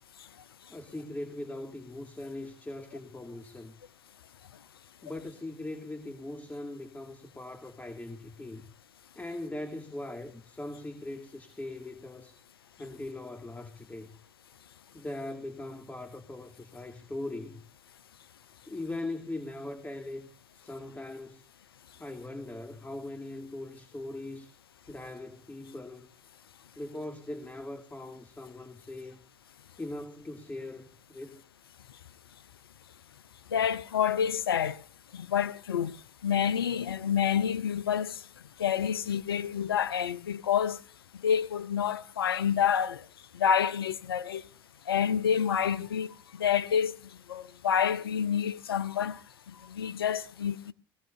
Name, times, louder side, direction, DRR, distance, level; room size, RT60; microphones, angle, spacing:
voice 1, 0.7-3.7 5.0-8.6 9.2-12.4 12.8-14.2 14.9-17.6 18.7-20.3 20.5-21.4 22.0-24.5 24.9-26.1 26.8-29.2 29.8-31.4, left 2 dB, 15° left, 2.3 m, -40 dB
voice 2, 33.5-34.8 35.1-35.9 36.2-38.2 38.6-40.8 41.2-43.0 43.3-44.4 44.9-46.9 47.3-49.2 49.7-50.7, left 8 dB, 85° left, 0.7 m, -28 dB
21.0 x 17.0 x 2.7 m
hypercardioid pair, 70°, 12 cm